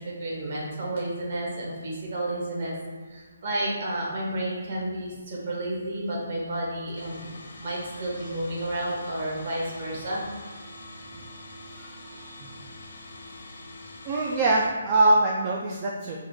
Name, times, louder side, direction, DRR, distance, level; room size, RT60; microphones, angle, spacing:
voice 1, 0.0-2.7 3.1-7.3 7.6-10.2 11.8-11.9, right 1 dB, 50° right, -3 dB, 1.2 m, -31 dB
sound 1, 6.9-14.7, left 1 dB, 70° left, 0.9 m, -44 dB
voice 2, 14.1-16.2, right 2 dB, 30° right, -1 dB, 0.4 m, -23 dB
3.6 x 2.6 x 3.7 m, 1.4 s
figure-of-eight pair, 145°, 0 cm